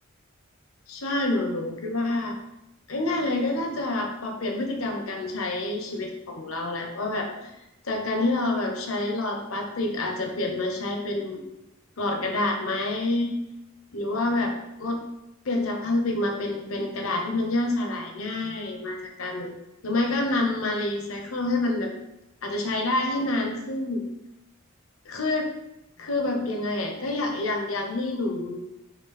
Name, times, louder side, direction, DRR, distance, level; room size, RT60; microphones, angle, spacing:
voice 1, 0.9-2.3 2.9-7.5 7.8-11.4 12.0-13.4 13.9-15.0 15.4-19.5 19.8-21.9 22.4-24.1 25.0-25.5 26.0-28.6, left 2 dB, 85° left, 3 dB, 1.1 m, -27 dB
9.6 x 3.3 x 4.3 m, 0.90 s
head